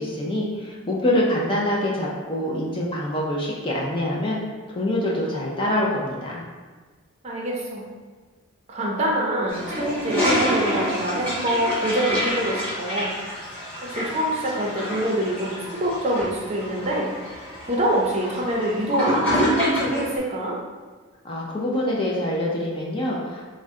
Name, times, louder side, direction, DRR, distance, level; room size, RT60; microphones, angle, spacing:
voice 1, 0.0-4.4 4.7-6.4 21.2-23.5, left 1 dB, 25° left, -3 dB, 0.4 m, -25 dB
voice 2, 7.2-7.9 8.7-13.2 13.8-20.6, right 1 dB, 30° right, -3 dB, 0.5 m, -25 dB
Toilet flush, 9.5-20.1, equal, 5° left, 1.1 m, -27 dB
3.7 x 2.1 x 3.5 m, 1.4 s
head